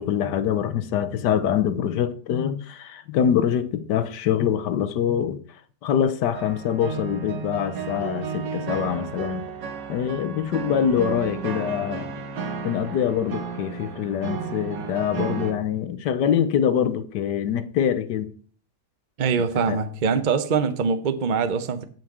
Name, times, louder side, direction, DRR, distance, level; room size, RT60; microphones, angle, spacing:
voice 1, 0.0-5.4 5.8-9.4 9.9-12.1 12.6-18.3 19.7-19.8, left 9 dB, 75° left, 1.4 m, -24 dB
sound 1, 6.3-15.5, right 6 dB, 80° right, 1.9 m, -33 dB
voice 2, 19.2-21.8, right 5 dB, 40° right, 0.7 m, -23 dB
7.9 x 6.0 x 7.3 m
omnidirectional pair, 1.9 m